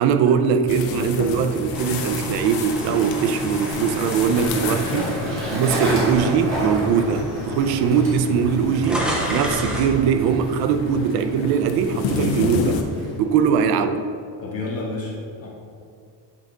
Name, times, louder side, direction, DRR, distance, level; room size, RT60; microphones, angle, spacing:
voice 1, 0.0-5.1 5.5-12.8 13.2-14.0, right 7 dB, 60° right, 8 dB, 0.5 m, -21 dB
sound 1, 0.7-12.8, left 5 dB, 85° left, 0.8 m, -31 dB
Skateboard, 0.8-13.6, equal, 30° right, 1.6 m, -32 dB
sound 2, 1.7-6.0 6.5-6.7 7.6-7.7 7.9-10.0, equal, ahead, 0.4 m, -31 dB
voice 2, 4.6-5.1 5.8-6.0 14.4-15.5, left 2 dB, 35° left, -4 dB, 1.0 m, -31 dB
8.3 x 3.6 x 3.8 m, 2.4 s
cardioid pair, 180°, 44 cm